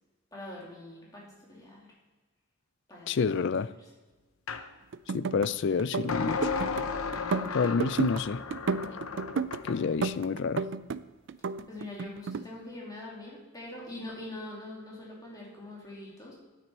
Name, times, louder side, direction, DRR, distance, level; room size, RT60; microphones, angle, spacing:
voice 1, 0.3-1.9 2.9-3.9 11.7-16.3, left 1 dB, 20° left, -4 dB, 2.8 m, -44 dB
voice 2, 3.1-3.7 5.1-6.5 7.5-8.4 9.6-10.6, left 5 dB, 55° left, 16 dB, 0.4 m, -28 dB
sound 1, 4.5-4.7 6.1-9.9, left 5 dB, 75° left, 0.8 m, -34 dB
sound 2, 4.9-5.5 5.8-6.9 7.1-8.2 8.5-9.6 10.0-11.0 11.3-12.4, right 5 dB, 60° right, 0.4 m, -31 dB
9.5 x 9.5 x 4.2 m, 1.2 s
head